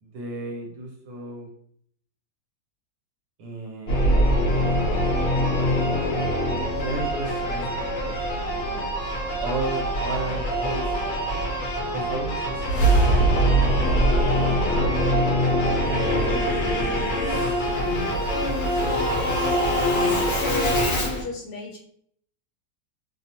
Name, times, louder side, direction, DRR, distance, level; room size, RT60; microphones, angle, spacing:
voice 1, 0.0-1.5 3.4-4.1 6.7-8.9 9.4-11.0 11.9-14.0 14.4-17.5, right 2 dB, 80° right, -1 dB, 1.5 m, -35 dB
Singing / Musical instrument, 3.9-21.2, equal, 55° left, 0.7 m, -23 dB
voice 2, 20.3-21.8, left 4 dB, 70° left, -1 dB, 1.0 m, -33 dB
3.1 x 2.1 x 2.7 m, 0.64 s
omnidirectional pair, 2.0 m